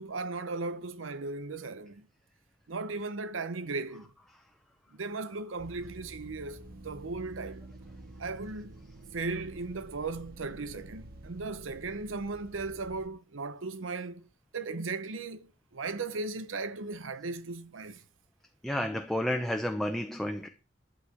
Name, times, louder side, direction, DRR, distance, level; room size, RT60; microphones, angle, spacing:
voice 1, 0.0-2.1 2.7-4.1 5.0-7.7 8.2-8.8 9.1-14.2 14.5-15.5 15.7-18.0, right 3 dB, 90° right, 0.8 m, -37 dB
sound 1, 5.6-13.1, right 1 dB, 50° right, 1.1 m, -49 dB
voice 2, 18.6-20.5, left 1 dB, ahead, 0.7 m, -31 dB
11.5 x 4.8 x 8.2 m
head